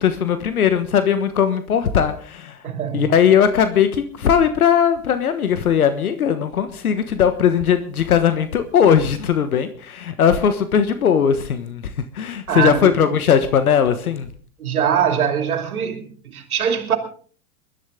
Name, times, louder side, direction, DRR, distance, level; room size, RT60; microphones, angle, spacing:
voice 1, 0.0-2.6 2.9-14.3, left 8 dB, 85° left, 1.4 m, -18 dB
voice 2, 2.6-3.1 12.5-12.8 14.6-17.0, right 8 dB, 85° right, 2.7 m, -22 dB
22.0 x 12.0 x 3.7 m
hypercardioid pair, 100°, 42 cm